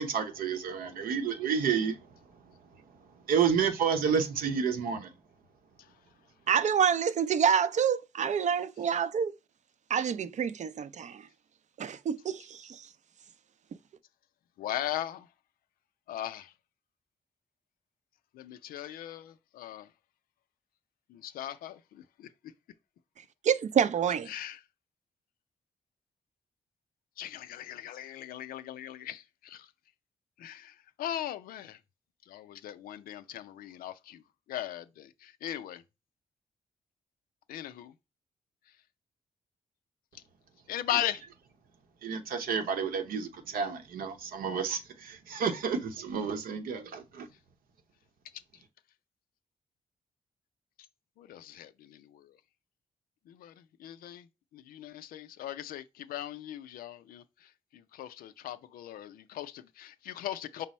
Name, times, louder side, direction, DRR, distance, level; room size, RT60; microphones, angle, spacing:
voice 1, 0.0-2.6 3.2-5.1 42.0-47.3, right 6 dB, 80° right, 0.8 m, -30 dB
voice 2, 6.5-9.3 9.9-11.3 11.8-12.8 23.4-24.3, right 7 dB, 55° right, 0.5 m, -27 dB
voice 3, 14.6-15.3 16.1-16.5 18.3-19.9 21.1-22.3 24.3-24.6 27.2-29.7 30.4-31.8 32.3-34.2 34.5-35.8 37.5-37.9 40.7-41.2 51.2-52.3 53.3-54.3 54.5-60.7, left 12 dB, 80° left, 0.4 m, -39 dB
5.2 x 2.0 x 4.1 m
supercardioid pair, 50°, 15 cm